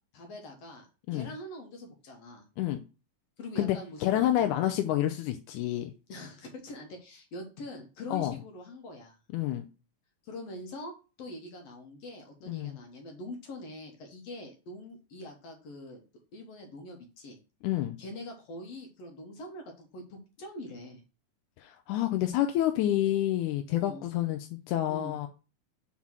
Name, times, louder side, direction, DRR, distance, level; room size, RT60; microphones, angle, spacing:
voice 1, 0.1-2.5 3.4-4.7 6.1-9.2 10.2-16.0 16.3-17.4 18.0-21.0 23.8-24.0 24.9-25.2, left 1 dB, 60° left, 2.0 m, -44 dB
voice 2, 3.6-5.9 8.1-8.3 9.3-9.7 12.5-12.8 17.6-18.0 21.6-25.3, left 13 dB, 80° left, 2.0 m, -28 dB
5.7 x 3.7 x 6.0 m
omnidirectional pair, 3.7 m